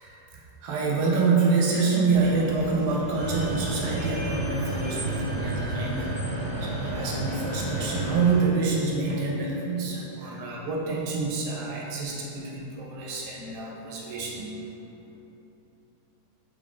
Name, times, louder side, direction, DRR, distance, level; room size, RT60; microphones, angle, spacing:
voice 1, 0.0-14.5, right 4 dB, 85° right, -3 dB, 1.2 m, -27 dB
sound 1, 2.1-7.2, equal, 30° right, 1.0 m, -42 dB
sound 2, 3.2-8.4, right 2 dB, 65° right, 1.2 m, -31 dB
3.4 x 2.4 x 3.5 m, 3.0 s
omnidirectional pair, 1.8 m